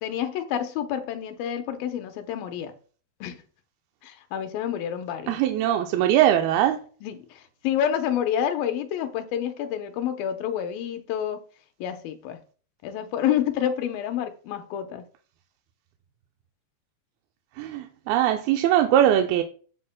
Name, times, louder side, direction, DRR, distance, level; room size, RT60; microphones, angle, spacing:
voice 1, 0.0-2.7 3.2-3.4 4.0-5.4 7.0-11.4 11.8-12.4 12.8-15.1, left 9 dB, 75° left, 2.5 m, -28 dB
voice 2, 5.3-6.8 17.6-19.4, right 11 dB, 85° right, 2.5 m, -21 dB
14.0 x 5.8 x 2.2 m
omnidirectional pair, 4.3 m